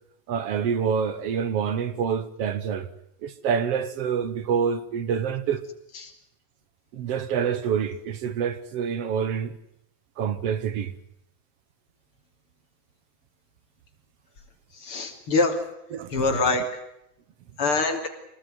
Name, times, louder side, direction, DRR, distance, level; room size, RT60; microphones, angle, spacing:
voice 1, 0.3-2.9 3.2-5.6 6.9-9.5 10.2-10.9 15.9-16.1, right 7 dB, 65° right, 1.6 m, -27 dB
voice 2, 14.8-15.6 16.1-16.6 17.6-18.1, left 3 dB, 40° left, 3.6 m, -24 dB
25.0 x 19.0 x 9.4 m
omnidirectional pair, 4.0 m